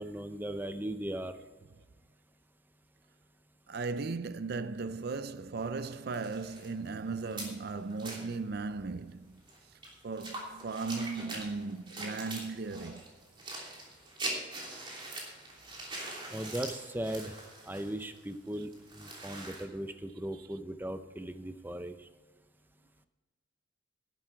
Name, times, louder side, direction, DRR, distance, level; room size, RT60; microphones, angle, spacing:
voice 1, 0.0-1.4 16.3-17.4 17.7-22.1, right 1 dB, 10° right, 0.6 m, -38 dB
voice 2, 3.7-9.4 10.0-13.0 19.3-19.4, right 4 dB, 55° right, 0.5 m, -37 dB
sound 1, 5.5-8.3 8.9-9.0 9.2-19.6, right 2 dB, 25° right, 3.0 m, -43 dB
12.0 x 11.5 x 4.5 m
head